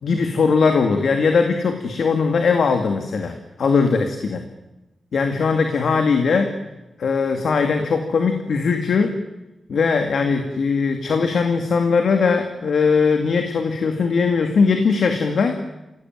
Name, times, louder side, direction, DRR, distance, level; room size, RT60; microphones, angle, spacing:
voice 1, 0.0-4.4 5.1-6.6 7.0-9.2 9.7-15.6, left 5 dB, 75° left, 5 dB, 2.2 m, -20 dB
27.5 x 17.0 x 9.4 m, 0.99 s
wide cardioid pair, 115°, 0 cm